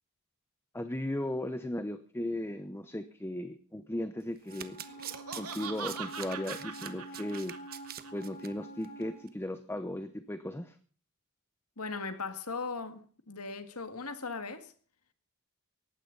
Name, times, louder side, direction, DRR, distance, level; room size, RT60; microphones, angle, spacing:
voice 1, 0.7-4.8 5.3-7.6 8.1-10.8, left 1 dB, 10° left, 0.9 m, -36 dB
Domestic sounds home sounds, 4.2-8.5 8.8-9.0 9.3-9.4, right 10 dB, 45° right, 1.2 m, -45 dB
Wind instrument woodwind instrument, 4.4-9.2, right 1 dB, 35° left, 5.1 m, -47 dB
Laughter, 4.9-8.1, right 6 dB, 85° right, 2.8 m, -42 dB
voice 2, 11.8-14.7, left 4 dB, 80° left, 2.0 m, -38 dB
19.0 x 15.5 x 4.0 m
head